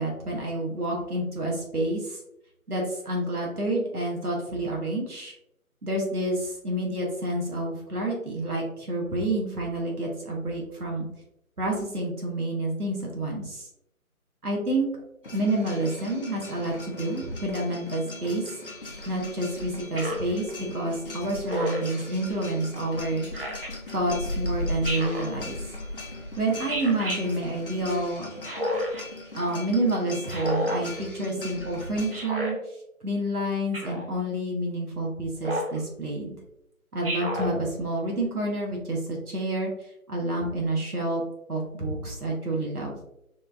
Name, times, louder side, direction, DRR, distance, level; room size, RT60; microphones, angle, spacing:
voice 1, 0.0-2.2 2.7-5.3 5.8-11.1 11.6-13.7 14.4-14.9 15.3-18.5 19.0-23.3 23.9-25.6 26.4-28.3 29.3-32.6 33.0-36.4 36.9-41.2 41.5-43.0, right 1 dB, 90° right, -2 dB, 1.5 m, -29 dB
sound 1, 15.2-32.2, left 2 dB, 40° left, 0.8 m, -38 dB
Speech synthesizer, 20.0-20.3 21.5-21.9 23.3-23.7 24.8-25.3 26.7-27.2 28.4-29.0 30.3-30.8 32.1-32.5 33.7-34.1 35.4-35.8 37.0-37.5, equal, 40° right, 0.9 m, -30 dB
4.5 x 3.8 x 2.5 m, 0.82 s
figure-of-eight pair, 155°, 44 cm